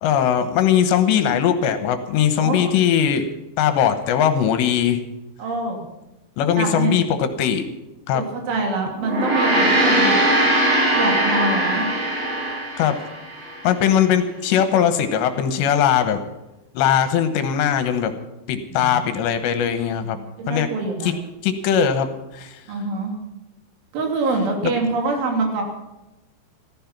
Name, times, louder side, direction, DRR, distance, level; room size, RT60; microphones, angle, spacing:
voice 1, 0.0-3.3 3.6-5.0 6.4-7.6 8.1-8.2 12.8-13.0 13.6-16.2 16.7-18.1 18.5-20.2 20.5-20.7 21.0-21.1 21.4-22.1 22.3-22.6, left 9 dB, 75° left, 8 dB, 3.1 m, -20 dB
voice 2, 2.4-2.7 5.4-5.8 6.5-7.0 8.1-10.2 10.9-11.9 18.7-19.1 20.0-21.2 22.7-23.2 23.9-25.6, right 3 dB, 80° right, 2 dB, 5.3 m, -25 dB
Gong, 9.0-13.6, right 1 dB, 55° right, 6.0 m, -20 dB
14.5 x 14.5 x 6.0 m, 0.97 s
omnidirectional pair, 5.4 m